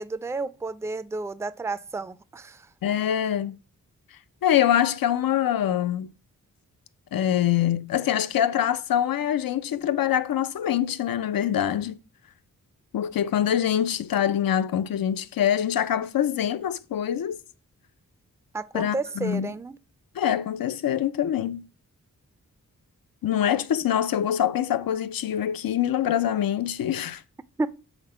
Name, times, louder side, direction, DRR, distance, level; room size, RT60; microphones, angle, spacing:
voice 1, 0.0-2.7 18.5-19.8 27.6-27.7, right 3 dB, 10° right, 0.4 m, -31 dB
voice 2, 2.8-3.5 4.4-6.1 7.1-12.0 12.9-17.4 18.7-19.5 20.2-21.7 23.2-27.2, left 10 dB, 85° left, 0.5 m, -24 dB
5.9 x 3.7 x 5.5 m
cardioid pair, 60°, 34 cm